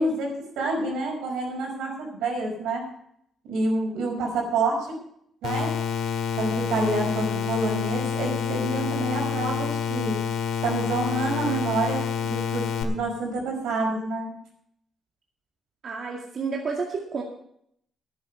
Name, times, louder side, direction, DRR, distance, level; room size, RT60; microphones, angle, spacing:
voice 1, 0.0-2.9 3.5-4.9 5.4-5.7 6.4-10.2 10.6-14.3, right 2 dB, 90° right, 0 dB, 5.4 m, -28 dB
sound 1, 5.4-12.8, left 7 dB, 80° left, 1.8 m, -28 dB
voice 2, 15.8-17.2, right 4 dB, 50° right, -1 dB, 2.2 m, -30 dB
11.0 x 9.5 x 6.4 m, 0.69 s
cardioid pair, 90°, 0 cm